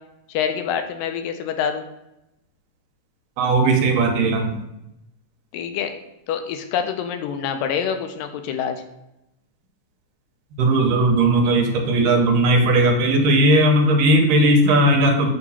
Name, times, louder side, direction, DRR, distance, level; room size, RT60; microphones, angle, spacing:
voice 1, 0.3-1.8 5.5-5.9 6.3-8.8, left 8 dB, 90° left, 7 dB, 2.3 m, -26 dB
voice 2, 3.4-4.6 10.6-15.3, right 1 dB, 75° right, 3 dB, 2.4 m, -17 dB
7.1 x 2.9 x 5.5 m, 0.87 s
omnidirectional pair, 3.9 m